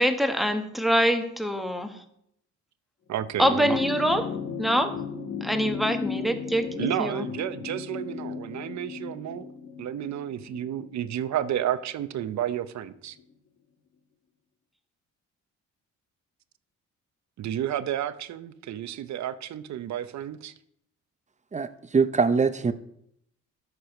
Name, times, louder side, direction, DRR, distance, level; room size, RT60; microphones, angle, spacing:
voice 1, 0.0-2.0 3.4-4.9 5.4-6.7 7.0-7.2, equal, ahead, 7 dB, 1.2 m, -24 dB
voice 2, 3.1-3.8 6.7-9.5 9.8-13.2 17.4-20.5, right 11 dB, 65° right, 13 dB, 0.8 m, -31 dB
sound 1, 3.3-12.0 13.2-13.3, left 6 dB, 50° left, 1.6 m, -36 dB
voice 3, 21.5-22.7, right 5 dB, 25° right, 12 dB, 0.8 m, -23 dB
13.0 x 4.9 x 5.9 m, 0.75 s
cardioid pair, 90°, 30 cm